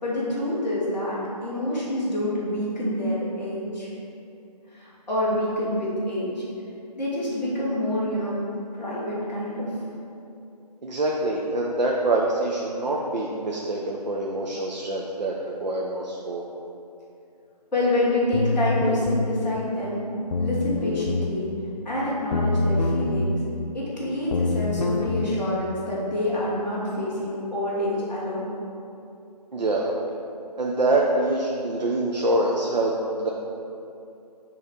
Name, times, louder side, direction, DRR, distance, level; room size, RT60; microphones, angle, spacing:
voice 1, 0.0-3.9 4.7-6.4 7.0-8.3 8.7-9.7 17.7-20.0 20.4-21.5 21.8-23.4 23.7-28.5, left 1 dB, ahead, -18 dB, 0.9 m, -27 dB
voice 2, 10.8-15.3 15.6-16.4 29.5-29.9 30.6-33.3, right 2 dB, 90° right, -3 dB, 0.8 m, -25 dB
sound 1, 18.3-19.3 20.3-21.3 22.3-23.3 24.3-25.3, left 2 dB, 75° left, 0.6 m, -25 dB
7.0 x 3.3 x 5.0 m, 2.7 s
figure-of-eight pair, 175°, 21 cm